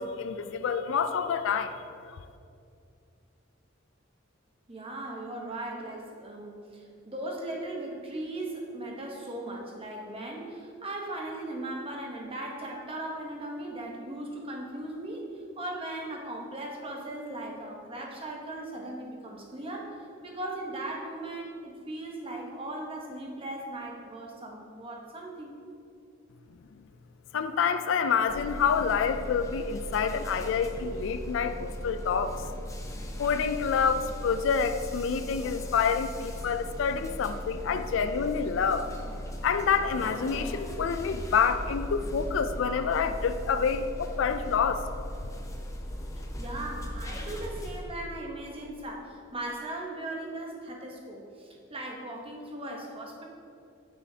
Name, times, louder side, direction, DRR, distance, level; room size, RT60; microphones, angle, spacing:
voice 1, 0.0-1.8 2.1-2.2 27.3-32.4 33.2-38.9 39.4-44.9, left 6 dB, 70° left, 10 dB, 0.3 m, -27 dB
voice 2, 4.7-15.3 15.6-20.0 20.2-25.5 46.4-53.2, right 1 dB, 30° right, -1 dB, 0.9 m, -38 dB
sound 1, 28.3-47.8, equal, 15° left, 0.6 m, -38 dB
9.0 x 6.2 x 2.8 m, 2.5 s
head